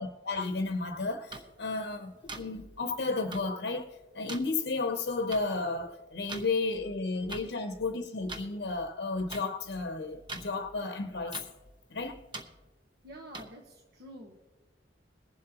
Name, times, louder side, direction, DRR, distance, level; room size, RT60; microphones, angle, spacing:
voice 1, 0.0-3.9 4.1-11.4 11.9-12.2, left 3 dB, 65° left, 0.8 m, -33 dB
sound 1, 1.3-1.4 2.3-2.4 3.3-3.4 4.3-4.4 5.3-5.4 6.3-6.4 7.3-7.4 8.3-8.4 9.3-9.4 10.3-10.5 11.3-11.4 12.3-12.4 13.3-13.4, right 2 dB, 25° right, 0.9 m, -40 dB
voice 2, 13.0-14.5, right 1 dB, 60° right, 1.2 m, -48 dB
22.5 x 7.6 x 2.9 m
head